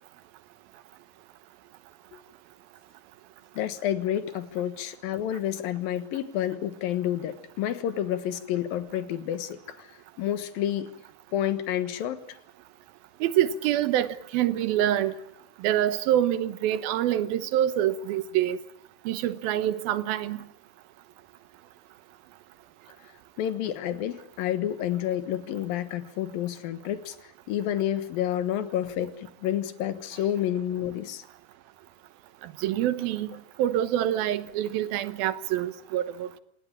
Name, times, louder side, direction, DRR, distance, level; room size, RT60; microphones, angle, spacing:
voice 1, 3.5-10.9 11.3-12.4 23.4-27.2 27.5-31.2, left 11 dB, 75° left, 3.0 m, -29 dB
voice 2, 13.2-15.1 15.6-18.6 19.1-20.4 32.6-33.3 33.6-36.4, right 11 dB, 80° right, 2.9 m, -26 dB
27.0 x 18.5 x 8.6 m
omnidirectional pair, 4.2 m